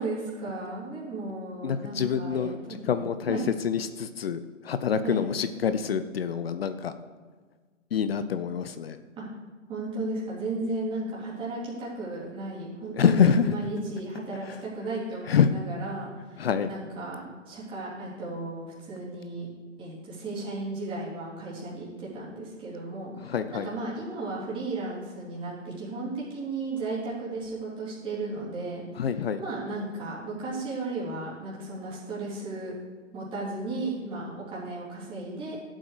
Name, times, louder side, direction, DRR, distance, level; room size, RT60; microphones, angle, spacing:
voice 1, 0.0-3.0 3.3-3.5 5.0-5.2 9.2-9.3 9.7-19.5 19.8-29.1 29.4-32.7 33.1-35.6, right 2 dB, 15° right, -7 dB, 3.6 m, -35 dB
voice 2, 1.6-2.6 2.8-3.4 3.6-6.9 7.9-9.0 12.9-13.5 15.3-15.5 16.4-16.7 23.2-23.7 29.0-29.4, left 7 dB, 50° left, 11 dB, 0.7 m, -26 dB
12.5 x 7.8 x 4.9 m, 1.4 s
hypercardioid pair, 145°, 38 cm